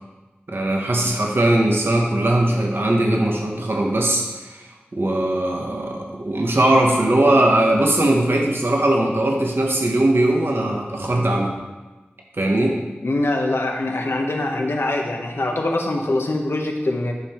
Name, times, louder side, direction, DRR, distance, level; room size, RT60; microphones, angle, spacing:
voice 1, 0.5-4.6 4.9-11.5 12.4-12.8, right 1 dB, 65° right, 0 dB, 1.4 m, -19 dB
voice 2, 13.0-17.1, left 2 dB, 80° left, 1 dB, 1.2 m, -23 dB
11.0 x 5.6 x 4.5 m, 1.2 s
wide cardioid pair, 60°, 4 cm